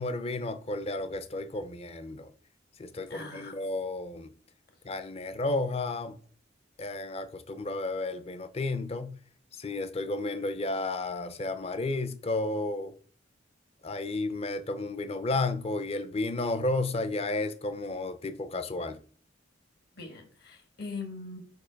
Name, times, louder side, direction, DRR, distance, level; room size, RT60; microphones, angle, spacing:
voice 1, 0.0-2.3 2.8-4.3 4.8-6.2 6.8-9.2 9.5-12.9 13.8-19.0, left 2 dB, 35° left, 0.6 m, -32 dB
voice 2, 3.1-3.6 20.0-21.4, left 4 dB, 55° left, 1.6 m, -41 dB
5.4 x 4.0 x 5.1 m
head